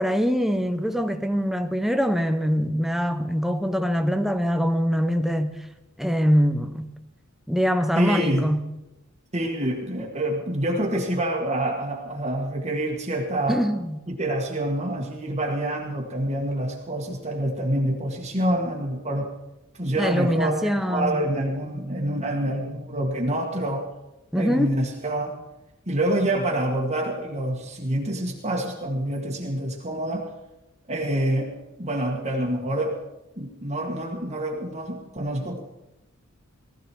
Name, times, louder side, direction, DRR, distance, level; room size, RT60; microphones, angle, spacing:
voice 1, 0.0-5.5 6.0-6.9 7.5-8.6 13.5-14.0 20.0-21.2 24.3-24.7, equal, ahead, 0.9 m, -23 dB
voice 2, 8.0-8.4 9.3-13.6 14.1-19.3 19.8-23.8 24.4-25.4 25.9-30.3 30.9-31.5 31.8-33.0 33.4-35.7, right 1 dB, 30° right, 1.9 m, -27 dB
19.0 x 14.0 x 4.6 m
head